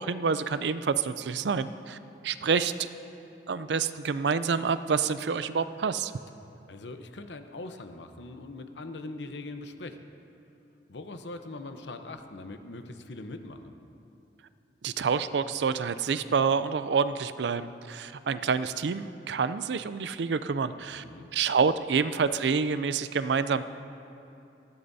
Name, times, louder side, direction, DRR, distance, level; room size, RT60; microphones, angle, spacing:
voice 1, 0.0-2.9 3.5-6.1 14.8-21.0 21.3-23.6, right 5 dB, 75° right, 13 dB, 0.4 m, -28 dB
voice 2, 6.7-10.0 10.9-13.8 20.8-21.3, left 2 dB, 85° left, 7 dB, 0.8 m, -41 dB
18.5 x 14.5 x 2.7 m, 2.8 s
head